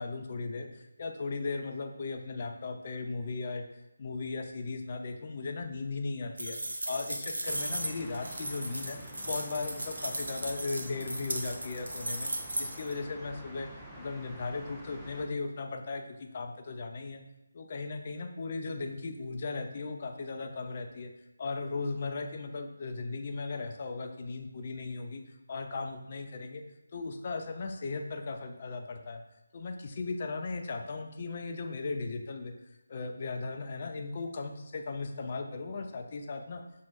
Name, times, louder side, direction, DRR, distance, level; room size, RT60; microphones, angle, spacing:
voice 1, 0.0-3.6 4.0-6.6 6.9-9.0 9.2-13.7 14.0-17.2 17.5-21.1 21.4-25.2 25.5-26.6 26.9-29.2 29.5-32.5 32.9-36.6, left 3 dB, 40° left, 5 dB, 0.6 m, -37 dB
sound 1, 6.4-12.9, right 1 dB, 80° right, 1.0 m, -36 dB
sound 2, 7.5-15.3, equal, ahead, 0.6 m, -48 dB
6.1 x 3.7 x 4.2 m, 0.94 s
figure-of-eight pair, 160°, 0 cm